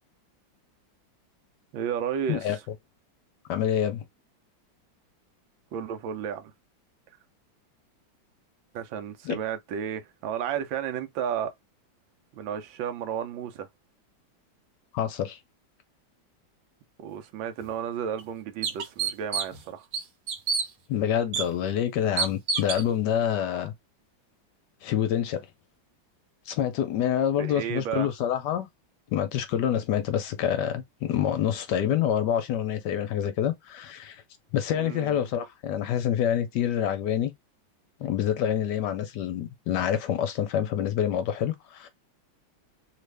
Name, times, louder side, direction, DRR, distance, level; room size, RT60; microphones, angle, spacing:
voice 1, 1.7-2.6 5.7-6.5 8.7-11.5 12.3-13.7 17.0-19.9 27.4-28.1 34.8-35.2, right 8 dB, 85° right, 1.4 m, -32 dB
voice 2, 3.5-4.0 9.2-9.4 14.9-15.4 20.9-23.7 24.8-25.5 26.5-28.7 29.1-34.2 34.5-37.3 38.0-41.9, left 10 dB, 70° left, 1.1 m, -27 dB
sound 1, 17.6-17.7 18.2-18.3 18.6-19.6 19.9-20.7 21.3-21.4 22.2-22.8, right 5 dB, 65° right, 1.3 m, -28 dB
3.3 x 2.4 x 3.2 m
omnidirectional pair, 2.1 m